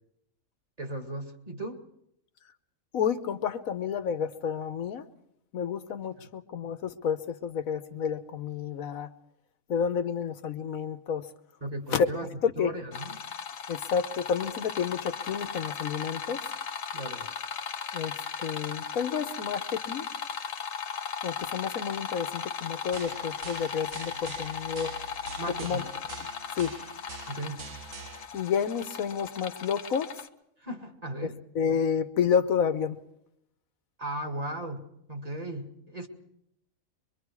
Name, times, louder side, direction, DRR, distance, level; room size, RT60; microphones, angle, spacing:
voice 1, 0.8-1.8 6.2-6.3 11.6-12.3 12.6-13.2 16.9-17.3 25.4-25.9 27.3-27.7 30.6-31.4 34.0-36.1, right 1 dB, 30° right, 3 dB, 2.3 m, -36 dB
voice 2, 2.9-5.0 5.5-9.1 9.7-11.3 11.9-12.1 12.4-12.7 13.7-16.4 17.9-20.1 21.2-24.9 25.6-25.8 26.5-26.7 28.3-30.1 31.2-33.0, left 7 dB, 90° left, 10 dB, 1.4 m, -30 dB
sound 1, 12.9-30.3, left 7 dB, 70° left, 1.4 m, -37 dB
sound 2, 22.9-28.3, right 5 dB, 60° right, 1.4 m, -45 dB
24.0 x 23.5 x 4.8 m, 0.77 s
omnidirectional pair, 1.4 m